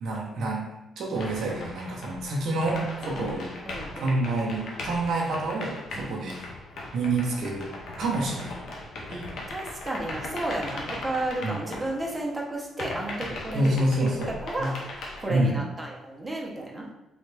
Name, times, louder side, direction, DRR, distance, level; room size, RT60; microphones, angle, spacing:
voice 1, 0.0-3.5 4.0-6.4 6.9-7.7 8.0-8.6 9.1-9.4 11.4-11.5 13.5-14.3 14.6-14.7 15.3-15.6, right 2 dB, 70° right, -1 dB, 0.8 m, -28 dB
sound 1, 1.1-12.4 12.8-15.3, left 2 dB, 70° left, 0.7 m, -39 dB
voice 2, 3.6-4.2 6.0-6.1 9.5-14.1 14.4-14.7 15.2-16.9, right 1 dB, 15° right, -2 dB, 0.8 m, -33 dB
3.3 x 2.5 x 3.3 m, 0.92 s
cardioid pair, 90°, 0 cm